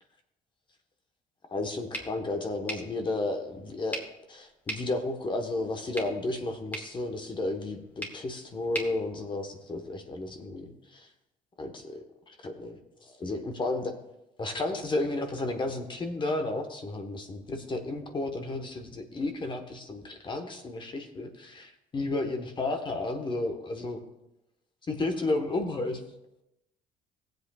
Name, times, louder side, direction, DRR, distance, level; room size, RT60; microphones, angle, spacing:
voice 1, 1.5-11.1 11.6-13.9 14.4-24.0 24.9-26.0, left 2 dB, 30° left, 5 dB, 1.2 m, -33 dB
sound 1, 1.9-10.0, equal, 10° left, 1.8 m, -43 dB
17.0 x 7.9 x 2.4 m, 0.89 s
cardioid pair, 105°, 15 cm